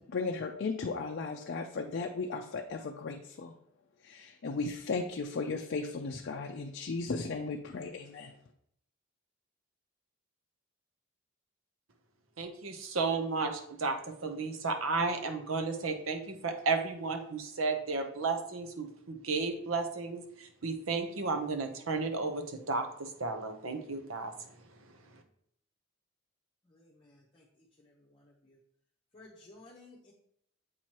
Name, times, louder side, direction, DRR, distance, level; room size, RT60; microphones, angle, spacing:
voice 1, 0.1-3.5 4.0-8.3, left 4 dB, 55° left, 0.4 m, -36 dB
voice 2, 12.4-24.3 24.8-24.9, right 4 dB, 85° right, 0.8 m, -33 dB
voice 3, 26.7-27.5 27.8-28.6 29.1-30.1, left 2 dB, 25° left, 0.8 m, -56 dB
7.9 x 2.9 x 4.5 m
head